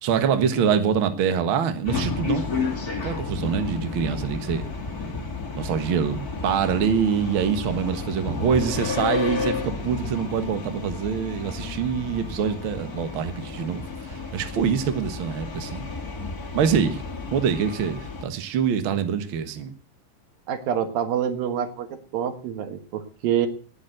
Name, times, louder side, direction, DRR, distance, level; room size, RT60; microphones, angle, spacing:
voice 1, 0.0-2.5 3.0-4.6 5.6-15.9 16.5-17.0 17.3-19.7, right 7 dB, 50° right, 8 dB, 1.8 m, -25 dB
sound 1, 1.9-18.2, left 4 dB, 30° left, 2.3 m, -32 dB
voice 2, 20.5-23.5, right 9 dB, 90° right, 8 dB, 3.3 m, -26 dB
19.0 x 7.3 x 8.0 m, 0.42 s
omnidirectional pair, 3.9 m